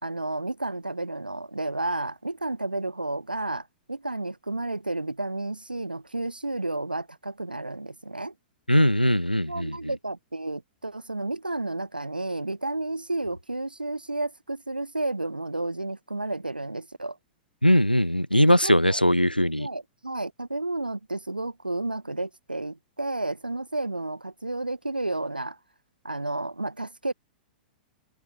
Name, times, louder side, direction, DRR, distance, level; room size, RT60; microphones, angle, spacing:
voice 1, 0.0-8.3 9.5-17.2 18.6-19.0 19.6-25.6 26.0-27.1, right 2 dB, 85° right, 3.5 m, -31 dB
voice 2, 8.7-9.8 17.6-19.7, equal, 90° left, 2.1 m, -20 dB
open air
figure-of-eight pair, 100°, 5 cm